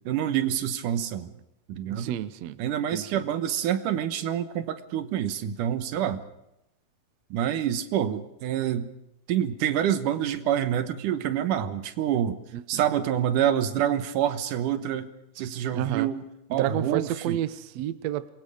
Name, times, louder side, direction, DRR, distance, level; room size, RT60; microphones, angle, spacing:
voice 1, 0.1-1.3 1.7-2.2 2.6-6.2 7.3-8.9 9.3-12.4 12.7-15.1 15.4-16.2 16.5-17.4, right 10 dB, 85° right, 10 dB, 2.7 m, -27 dB
voice 2, 1.9-2.6 2.9-3.2 12.5-12.8 15.7-16.1 16.5-18.3, right 12 dB, 65° right, 13 dB, 1.9 m, -30 dB
27.5 x 22.5 x 5.0 m, 0.85 s
omnidirectional pair, 3.6 m